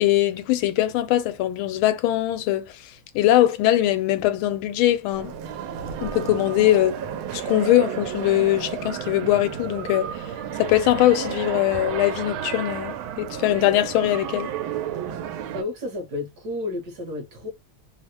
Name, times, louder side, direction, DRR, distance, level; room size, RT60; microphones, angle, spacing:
voice 1, 0.0-2.7 3.1-5.3 6.0-7.0 7.3-10.1 10.6-14.5, left 13 dB, 80° left, 1.4 m, -21 dB
sound 1, 5.1-15.6, right 8 dB, 85° right, 1.4 m, -32 dB
voice 2, 15.5-17.5, left 2 dB, 60° right, 1.4 m, -31 dB
3.4 x 2.0 x 2.8 m
omnidirectional pair, 2.3 m